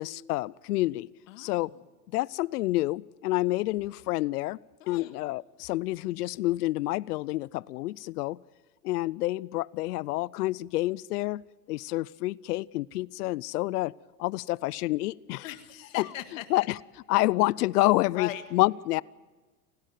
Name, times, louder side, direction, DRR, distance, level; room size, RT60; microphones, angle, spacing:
voice 1, 0.0-1.1 1.4-1.7 2.1-4.6 4.9-8.4 8.8-13.9 14.2-15.4 16.0-16.1 16.5-16.8 17.1-19.0, left 18 dB, 75° left, 24 dB, 0.6 m, -28 dB
voice 2, 1.3-1.8 4.8-5.2 15.4-16.7 17.2-17.3 18.1-18.4, left 13 dB, 55° left, 9 dB, 1.8 m, -40 dB
29.5 x 11.5 x 9.2 m, 1.3 s
supercardioid pair, 165°, 47 cm